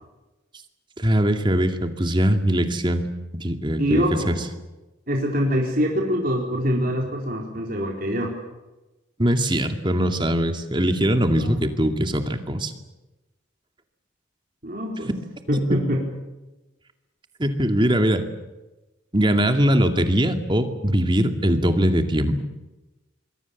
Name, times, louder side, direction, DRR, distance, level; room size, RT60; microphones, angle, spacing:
voice 1, 1.0-3.0 3.3-4.3 9.2-12.7 15.5-15.8 17.4-18.3 19.1-22.4, equal, 25° right, 6 dB, 2.3 m, -21 dB
voice 2, 3.8-4.3 5.1-8.4 11.4-11.6 14.6-15.1 15.5-16.0, equal, 45° right, 0 dB, 4.4 m, -24 dB
26.5 x 23.0 x 7.3 m, 1.1 s
head